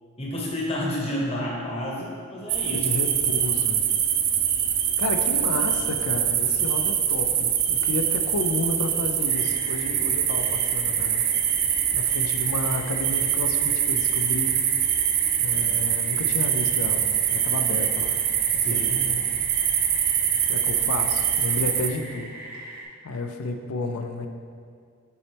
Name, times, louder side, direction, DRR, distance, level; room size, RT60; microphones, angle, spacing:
voice 1, 0.2-2.9 18.6-18.9, left 1 dB, 25° left, -3 dB, 0.9 m, -30 dB
sound 1, 2.5-21.9, right 9 dB, 40° right, 0.3 m, -24 dB
voice 2, 2.7-3.8 5.0-11.2 11.9-14.6 15.4-18.2 18.7-19.5 20.5-22.3 23.0-24.3, left 2 dB, 80° left, 6 dB, 0.5 m, -31 dB
sound 2, 9.2-22.8, right 1 dB, 80° right, 1.2 m, -41 dB
6.9 x 4.1 x 3.4 m, 2.1 s
head